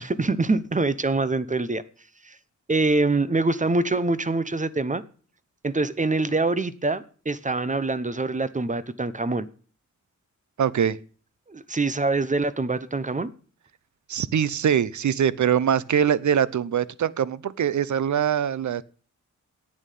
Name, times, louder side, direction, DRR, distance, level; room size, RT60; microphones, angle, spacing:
voice 1, 0.0-1.8 2.2-2.4 2.7-5.0 5.6-9.5 11.5-13.3, right 3 dB, 25° right, 0.9 m, -24 dB
voice 2, 10.6-11.0 14.1-18.8, right 8 dB, 65° right, 0.8 m, -23 dB
11.0 x 8.8 x 8.4 m
wide cardioid pair, 100°, 31 cm